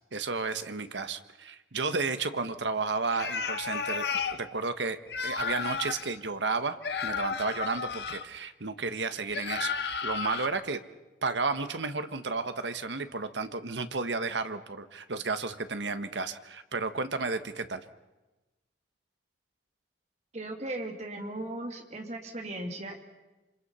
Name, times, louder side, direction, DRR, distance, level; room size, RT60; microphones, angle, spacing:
voice 1, 0.1-6.8 7.0-9.7 10.0-10.8 11.2-17.8, right 4 dB, 90° right, 10 dB, 1.4 m, -32 dB
sound 1, 3.1-4.4 5.1-6.1 6.8-8.2 9.3-10.5, left 5 dB, 70° left, 1.3 m, -33 dB
voice 2, 20.3-23.0, right 1 dB, 40° right, 3 dB, 2.9 m, -37 dB
26.5 x 26.5 x 5.7 m, 1.1 s
head